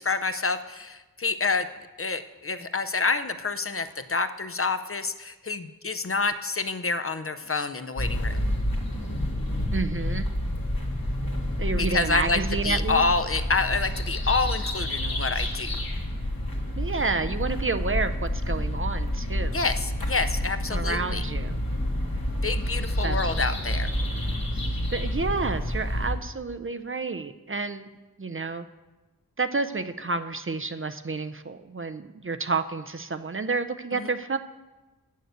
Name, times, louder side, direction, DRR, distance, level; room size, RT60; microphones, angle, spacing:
voice 1, 0.0-1.7 2.0-8.5 11.8-15.8 19.5-21.3 22.4-23.9 33.9-34.1, left 3 dB, 40° left, 11 dB, 0.5 m, -28 dB
sound 1, 8.0-26.1, left 1 dB, 80° left, 1.6 m, -29 dB
voice 2, 9.7-10.3 11.6-13.0 16.8-19.6 20.7-21.6 23.0-23.4 24.9-27.9 28.2-28.6 29.4-34.4, right 4 dB, 35° right, 10 dB, 0.5 m, -30 dB
8.0 x 6.5 x 7.9 m, 1.1 s
wide cardioid pair, 50°, 35 cm